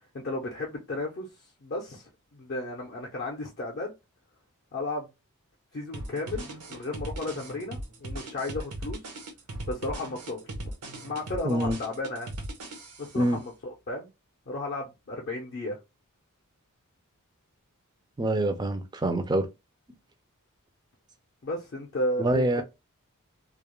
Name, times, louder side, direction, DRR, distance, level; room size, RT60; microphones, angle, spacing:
voice 1, 0.1-1.3 1.6-3.9 4.7-5.1 5.7-9.0 9.7-10.4 11.0-12.3 13.0-14.1 14.5-15.8 21.4-22.6, left 2 dB, 45° left, 0.5 m, -34 dB
sound 1, 5.9-13.2, right 1 dB, 90° right, 0.7 m, -38 dB
voice 2, 11.4-11.8 13.1-13.4 18.2-19.5 22.2-22.6, right 1 dB, 20° right, 0.3 m, -25 dB
2.3 x 2.1 x 2.9 m
head